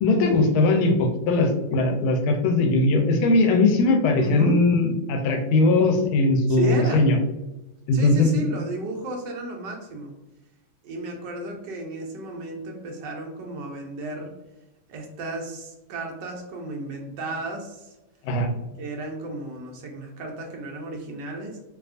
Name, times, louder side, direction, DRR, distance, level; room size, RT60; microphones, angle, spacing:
voice 1, 0.0-7.2 7.9-8.4 18.2-18.5, left 2 dB, 90° left, 4 dB, 1.5 m, -20 dB
voice 2, 4.2-4.6 6.5-7.1 7.9-10.1 10.8-14.3 14.9-17.9 18.8-21.6, right 1 dB, 70° right, 1 dB, 1.2 m, -33 dB
3.4 x 2.8 x 2.4 m, 0.98 s
omnidirectional pair, 2.2 m